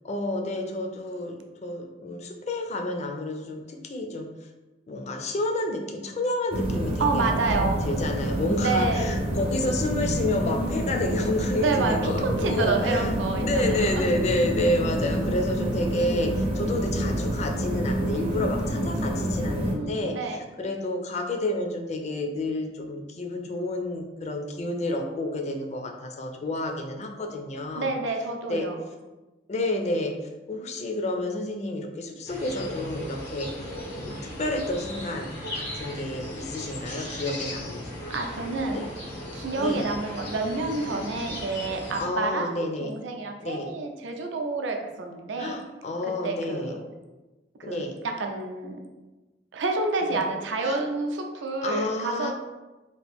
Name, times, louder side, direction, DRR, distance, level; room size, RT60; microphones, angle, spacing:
voice 1, 0.0-4.3 4.9-13.1 13.4-20.1 20.6-27.9 28.5-28.7 29.5-30.1 30.5-33.5 33.9-38.1 38.7-38.8 39.6-39.9 42.0-42.9 43.4-43.7 45.4-46.8 47.6-47.9 50.0-50.1 50.6-50.8 51.6-52.3, left 1 dB, 40° left, 4 dB, 0.4 m, -30 dB
sound 1, 6.5-19.7, right 1 dB, 30° right, 0.5 m, -28 dB
voice 2, 7.0-7.8 8.6-9.0 11.6-14.1 19.7-20.4 27.8-28.8 38.1-38.8 39.3-45.6 46.2-46.8 47.6-48.8 49.5-52.3, right 3 dB, 80° right, 3 dB, 0.5 m, -29 dB
sound 2, 32.3-42.1, left 1 dB, 85° left, 1.5 m, -37 dB
2.9 x 2.5 x 3.4 m, 1.1 s
head